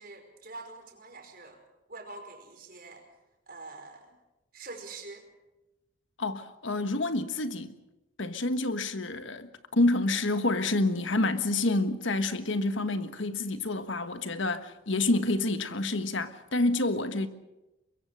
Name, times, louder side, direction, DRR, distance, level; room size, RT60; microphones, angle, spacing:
voice 1, 0.0-1.6 1.9-3.1 3.5-4.1 4.5-5.3, right 3 dB, 45° right, 5.1 m, -45 dB
voice 2, 6.2-7.8 8.2-17.3, left 2 dB, 70° left, 1.5 m, -28 dB
23.0 x 22.5 x 6.5 m
head